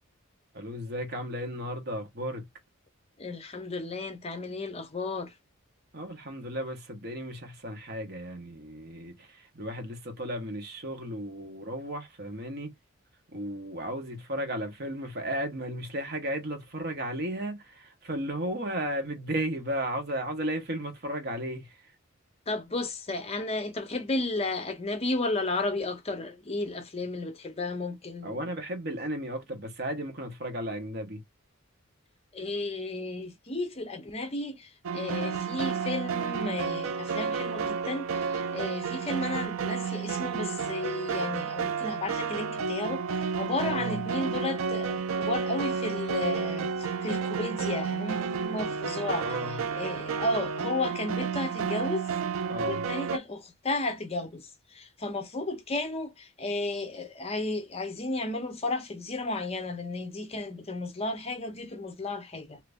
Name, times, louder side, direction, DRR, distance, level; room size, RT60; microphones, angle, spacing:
voice 1, 0.5-2.4 5.9-12.7 13.3-21.8 28.2-31.2 43.7-44.0 49.1-49.6 52.5-52.8, right 1 dB, 50° right, 1.1 m, -34 dB
voice 2, 3.2-5.3 22.5-28.4 32.3-52.1 52.6-62.6, left 2 dB, 30° left, 0.6 m, -33 dB
sound 1, 34.8-53.2, right 6 dB, 75° right, 0.4 m, -31 dB
2.8 x 2.6 x 3.4 m
head